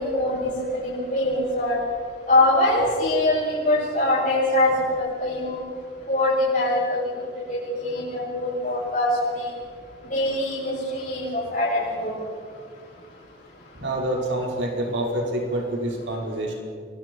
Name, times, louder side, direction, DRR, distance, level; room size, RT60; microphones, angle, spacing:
voice 1, 0.0-1.8 2.3-5.6 6.1-7.0 7.5-9.5 10.1-12.1, left 1 dB, 50° left, -8 dB, 7.4 m, -23 dB
voice 2, 13.7-16.5, right 1 dB, 80° right, -1 dB, 5.5 m, -27 dB
30.0 x 23.0 x 4.8 m, 2.2 s
head